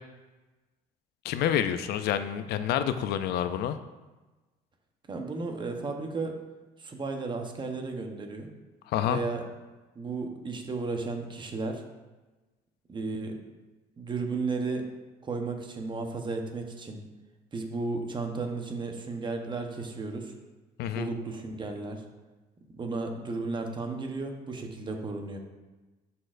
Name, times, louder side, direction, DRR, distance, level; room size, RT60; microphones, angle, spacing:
voice 1, 1.2-3.8 8.9-9.2 20.8-21.1, left 10 dB, 75° left, 11 dB, 0.4 m, -28 dB
voice 2, 5.1-6.3 6.8-8.5 9.1-9.4 10.0-11.8 12.9-13.4 14.0-14.8 15.2-17.0 17.5-20.3 20.9-22.0 22.7-25.4, right 3 dB, 30° right, 3 dB, 0.9 m, -34 dB
11.0 x 4.3 x 2.5 m, 1.2 s
cardioid pair, 110°, 17 cm